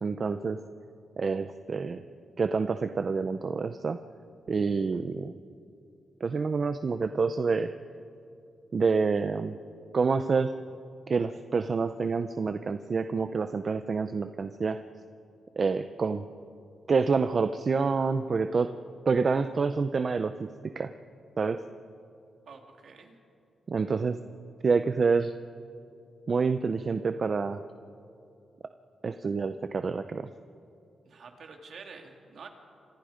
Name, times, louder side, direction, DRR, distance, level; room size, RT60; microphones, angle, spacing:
voice 1, 0.0-0.6 1.2-2.0 2.4-4.0 4.5-5.3 6.2-7.7 8.7-9.5 9.9-10.5 11.1-14.8 15.6-16.3 16.9-18.7 19.1-20.9 21.4-21.6 23.7-24.2 24.6-25.3 26.3-27.6 29.0-30.3, right 4 dB, 40° right, 9 dB, 0.7 m, -27 dB
voice 2, 22.4-23.2 31.0-32.5, right 5 dB, 60° right, 3 dB, 3.0 m, -48 dB
30.0 x 26.5 x 5.2 m, 2.6 s
cardioid pair, 120°, 0 cm